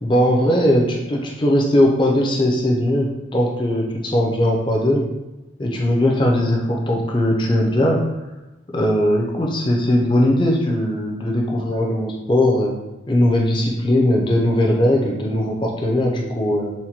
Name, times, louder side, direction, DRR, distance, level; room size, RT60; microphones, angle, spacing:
voice 1, 0.0-5.1 5.6-8.0 8.7-12.7 13.1-16.7, left 1 dB, 25° left, -1 dB, 0.5 m, -19 dB
4.2 x 2.1 x 2.8 m, 1.0 s
head